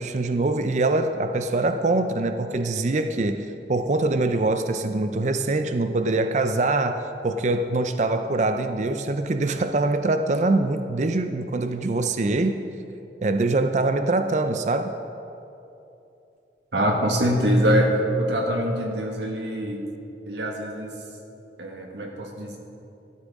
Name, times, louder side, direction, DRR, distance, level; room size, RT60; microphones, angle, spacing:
voice 1, 0.0-12.7 13.2-14.9, right 2 dB, 40° right, 8 dB, 0.4 m, -24 dB
voice 2, 16.7-19.9 20.3-20.9 21.6-22.6, equal, 85° right, 1 dB, 1.7 m, -24 dB
13.0 x 12.5 x 3.6 m, 2.8 s
head